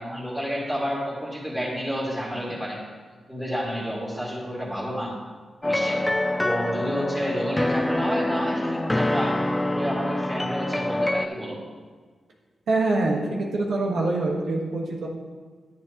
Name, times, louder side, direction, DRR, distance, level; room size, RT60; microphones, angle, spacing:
voice 1, 0.0-2.8 3.3-5.1 5.6-6.0 6.4-9.3 9.7-11.6, equal, 5° right, -6 dB, 2.3 m, -30 dB
sound 1, 5.6-11.3, left 1 dB, 10° left, 0.3 m, -25 dB
voice 2, 12.7-15.1, right 2 dB, 90° right, -2 dB, 1.3 m, -25 dB
10.5 x 9.3 x 3.0 m, 1.5 s
wide cardioid pair, 110°, 0 cm